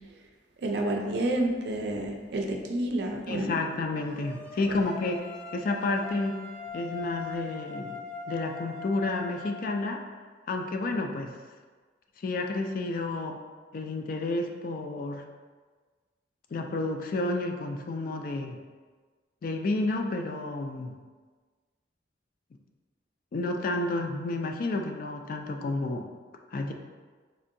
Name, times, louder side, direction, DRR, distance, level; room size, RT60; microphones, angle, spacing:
voice 1, 0.6-3.5 4.7-4.8, right 1 dB, 60° right, 2 dB, 0.4 m, -29 dB
voice 2, 3.3-5.3 5.5-6.4 6.7-8.0 8.3-10.0 10.5-11.3 12.2-13.4 13.7-15.2 16.5-18.6 19.4-21.0 23.3-26.1 26.5-26.7, left 2 dB, 45° left, 3 dB, 0.3 m, -30 dB
sound 1, 4.0-9.8, left 4 dB, 70° left, 1.0 m, -41 dB
4.2 x 2.7 x 2.6 m, 1.5 s
head